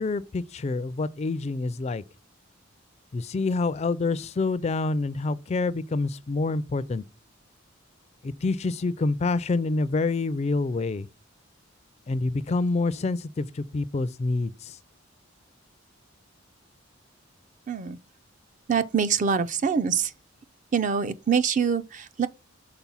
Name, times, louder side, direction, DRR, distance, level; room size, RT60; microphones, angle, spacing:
voice 1, 0.0-2.0 3.1-7.0 8.2-11.1 12.1-14.8, left 3 dB, 35° left, 0.3 m, -27 dB
voice 2, 17.7-18.0 18.7-20.1 20.7-22.3, right 6 dB, 40° right, 0.4 m, -24 dB
5.9 x 4.3 x 5.5 m
head